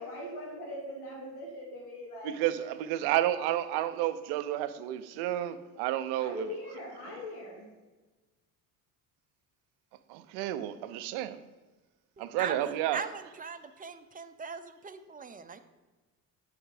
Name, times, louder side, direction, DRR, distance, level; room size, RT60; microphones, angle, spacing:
voice 1, 0.0-2.3 6.2-7.6, left 1 dB, 75° left, 2.4 m, -41 dB
voice 2, 2.2-6.6 10.1-11.4 12.2-13.0, right 13 dB, 85° right, 0.5 m, -31 dB
voice 3, 12.2-15.6, right 5 dB, 20° right, 0.5 m, -41 dB
8.6 x 3.4 x 4.8 m
supercardioid pair, 60°, 38 cm